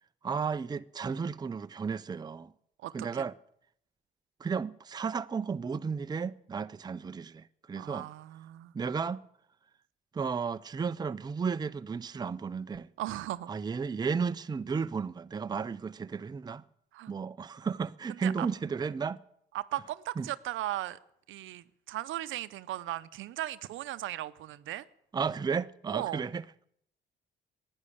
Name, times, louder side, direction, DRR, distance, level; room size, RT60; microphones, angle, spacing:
voice 1, 0.2-2.5 2.9-3.3 4.4-8.1 8.7-9.2 10.1-12.9 13.5-16.6 17.1-19.2 20.2-20.3 25.1-26.6, right 5 dB, 20° right, 0.4 m, -33 dB
voice 2, 2.8-3.2 7.8-8.7 13.0-13.5 16.9-17.1 18.1-18.5 19.5-21.0 21.3-24.9 25.9-26.2, right 14 dB, 80° right, 0.7 m, -37 dB
11.0 x 9.7 x 9.8 m
cardioid pair, 90°, 20 cm